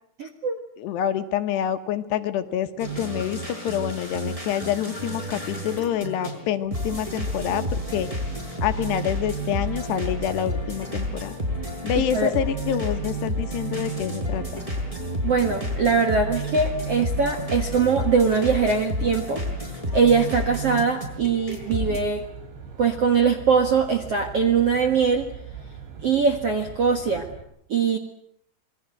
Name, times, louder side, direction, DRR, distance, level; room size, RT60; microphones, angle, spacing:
voice 1, 0.2-0.6 12.0-12.3 15.2-19.4 19.9-22.2 22.8-25.3 26.0-27.3 27.7-28.0, right 5 dB, 55° right, 5 dB, 1.7 m, -22 dB
voice 2, 0.8-8.1 8.6-11.4 11.8-14.6, left 10 dB, 70° left, 8 dB, 3.1 m, -27 dB
sound 1, 2.8-22.0, equal, 5° right, 5.5 m, -30 dB
Aircraft, 20.7-27.4, right 7 dB, 75° right, 5.6 m, -41 dB
27.5 x 21.5 x 7.8 m, 0.70 s
omnidirectional pair, 5.3 m